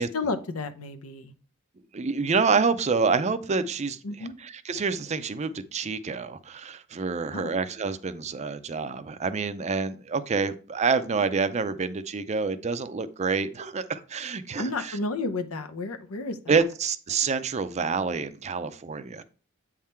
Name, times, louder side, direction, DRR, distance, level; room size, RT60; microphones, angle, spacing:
voice 1, 0.1-1.3 4.0-4.4 7.3-7.5 14.6-16.6, left 3 dB, 85° left, 0.8 m, -32 dB
voice 2, 1.9-4.0 4.4-15.0 16.5-19.2, right 4 dB, 30° right, 0.5 m, -27 dB
8.4 x 3.6 x 4.3 m
head